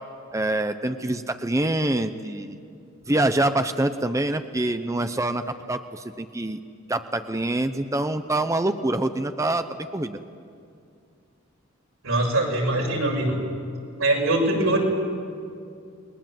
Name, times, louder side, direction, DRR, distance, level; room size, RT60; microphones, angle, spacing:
voice 1, 0.3-2.6 3.1-6.6 6.9-10.2, right 1 dB, 15° right, 9 dB, 0.7 m, -25 dB
voice 2, 12.0-13.4 14.0-14.8, right 1 dB, 90° right, -1 dB, 6.7 m, -22 dB
29.5 x 21.0 x 7.6 m, 2.4 s
head